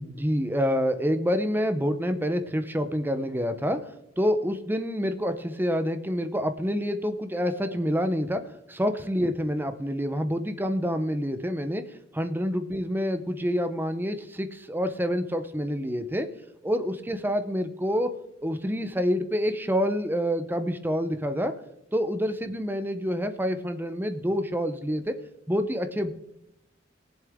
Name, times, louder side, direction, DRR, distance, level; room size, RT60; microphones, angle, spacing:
voice 1, 0.0-11.9 12.1-16.3 16.6-18.1 18.4-21.5 21.9-25.2 25.5-26.1, equal, 10° right, 9 dB, 0.8 m, -27 dB
20.0 x 7.3 x 3.6 m, 0.82 s
head